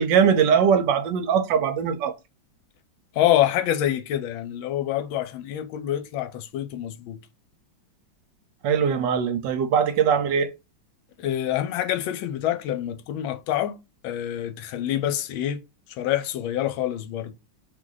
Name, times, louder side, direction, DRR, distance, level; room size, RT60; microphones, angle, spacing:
voice 1, 0.0-2.1 8.6-10.5, right 7 dB, 75° right, 1.2 m, -21 dB
voice 2, 3.1-7.2 11.2-13.8 14.0-15.6 15.9-17.3, left 12 dB, 80° left, 1.4 m, -26 dB
3.7 x 3.1 x 3.9 m
omnidirectional pair, 2.1 m